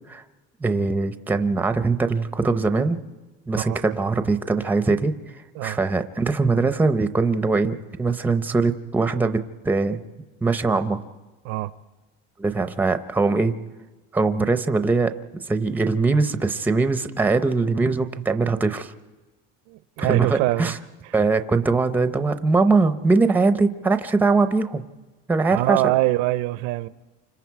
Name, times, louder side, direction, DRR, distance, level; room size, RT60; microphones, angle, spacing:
voice 1, 0.6-3.0 3.5-5.4 5.6-10.0 10.4-11.0 12.4-13.5 14.1-18.9 20.0-20.8 21.1-24.8 25.3-25.8, right 3 dB, 5° right, 0.6 m, -22 dB
voice 2, 19.7-20.8 25.5-26.9, right 18 dB, 70° right, 0.7 m, -23 dB
28.5 x 26.0 x 4.7 m
cardioid pair, 155°, 30 cm